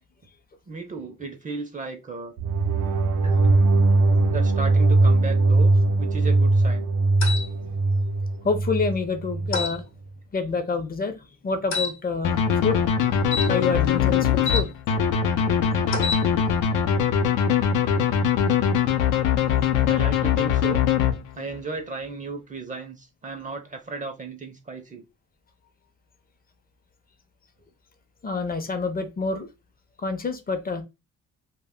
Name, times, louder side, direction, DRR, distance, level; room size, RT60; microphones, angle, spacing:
voice 1, 0.7-2.3 2.7-2.9 3.2-3.4 4.3-6.9 19.9-20.9 21.3-25.0, right 4 dB, 25° right, 0.5 m, -35 dB
sound 1, 2.4-9.6, right 2 dB, 85° right, 0.5 m, -20 dB
sound 2, 7.2-7.5 9.5-9.8 11.7-11.9 13.3-14.6 15.9-16.2, left 5 dB, 65° left, 0.8 m, -28 dB
voice 2, 8.4-9.8 10.3-12.3 12.6-12.8 13.5-14.7 28.2-29.5 30.0-30.8, left 4 dB, 30° left, 0.5 m, -27 dB
sound 3, 12.2-21.6, left 8 dB, 85° left, 0.5 m, -22 dB
2.1 x 2.0 x 3.5 m
cardioid pair, 90°, 30 cm